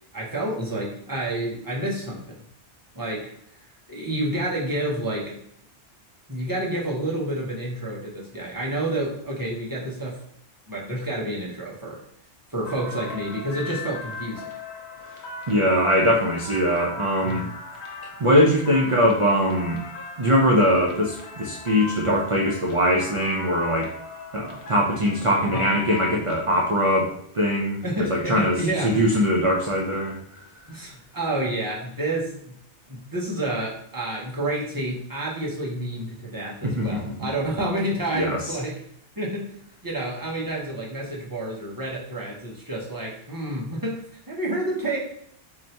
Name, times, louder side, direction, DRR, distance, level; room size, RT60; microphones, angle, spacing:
voice 1, 0.1-2.4 2.9-3.3 3.9-5.4 6.3-10.2 10.7-12.0 12.5-14.5 17.2-17.5 25.5-25.6 27.8-29.2 30.7-32.6 32.9-38.8 39.2-39.5 39.8-45.0, right 1 dB, 20° right, -4 dB, 0.8 m, -29 dB
sound 1, 12.6-26.4, left 4 dB, 70° left, 1.0 m, -38 dB
voice 2, 15.5-17.4 18.2-19.8 20.2-23.9 24.3-27.8 28.1-28.6 28.8-30.2 36.6-37.3 38.1-38.4, equal, 45° right, -2 dB, 0.4 m, -21 dB
2.8 x 2.6 x 4.4 m, 0.68 s
omnidirectional pair, 1.2 m